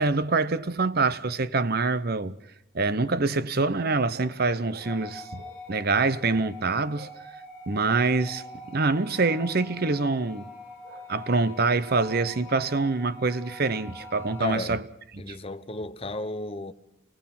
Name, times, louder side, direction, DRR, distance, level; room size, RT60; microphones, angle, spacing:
voice 1, 0.0-2.4 2.7-7.3 7.7-10.5 10.9-14.8 15.2-15.4, right 3 dB, 45° right, 0.8 m, -25 dB
sound 1, 4.8-14.5, left 2 dB, 5° left, 4.0 m, -44 dB
voice 2, 14.4-14.8 15.2-16.7, left 2 dB, 25° left, 0.8 m, -34 dB
29.5 x 18.5 x 5.9 m
head